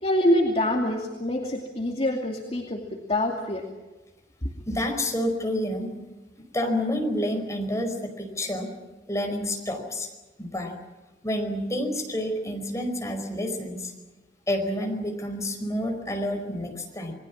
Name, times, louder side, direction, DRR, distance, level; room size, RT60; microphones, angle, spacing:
voice 1, 0.0-2.8 3.1-3.6 4.4-4.5, left 1 dB, 35° left, 0 dB, 2.6 m, -25 dB
voice 2, 4.7-5.9 6.5-8.7 9.1-10.1 10.4-10.7 11.2-13.9 14.5-17.1, left 1 dB, 20° left, 3 dB, 4.9 m, -29 dB
28.5 x 21.0 x 7.4 m, 1.2 s
head